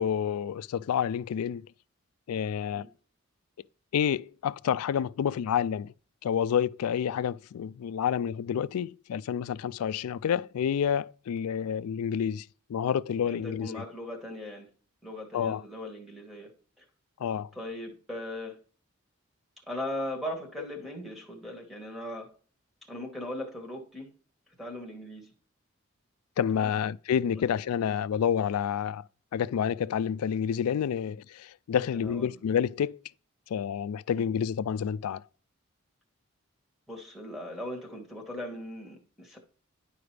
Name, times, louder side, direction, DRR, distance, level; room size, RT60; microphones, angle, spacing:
voice 1, 0.0-1.6 2.3-2.9 3.9-5.9 6.2-13.8 15.3-15.6 17.2-17.5 26.4-29.1 29.3-33.0 33.5-35.2, left 8 dB, 85° left, 0.3 m, -29 dB
voice 2, 13.2-14.7 15.0-16.5 16.8-16.9 17.5-18.6 19.6-22.3 22.9-24.1 24.6-25.3 26.5-26.7 27.3-27.4 31.8-32.4 34.1-34.2 36.9-39.4, left 1 dB, ahead, 1.5 m, -39 dB
11.0 x 4.8 x 3.3 m
head